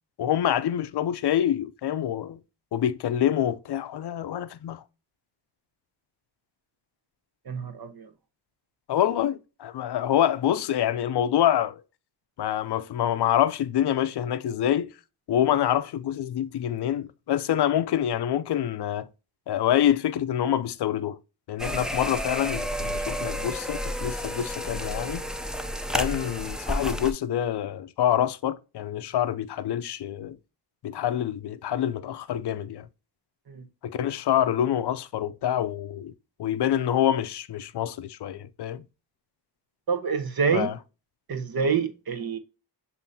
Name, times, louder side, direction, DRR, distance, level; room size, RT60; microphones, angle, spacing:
voice 1, 0.2-2.4 2.7-4.8 8.9-11.8 12.4-14.9 15.3-19.1 19.5-21.2 21.5-25.2 25.9-30.4 30.8-32.9 33.8-36.1 36.4-38.8 40.5-40.7, left 10 dB, 60° left, 0.6 m, -26 dB
voice 2, 7.5-8.1 33.5-33.6 39.9-40.7 41.3-42.4, right 6 dB, 55° right, 1.0 m, -27 dB
sound 1, 21.6-27.1, equal, ahead, 0.5 m, -31 dB
7.0 x 2.7 x 2.7 m
cardioid pair, 65°, 45 cm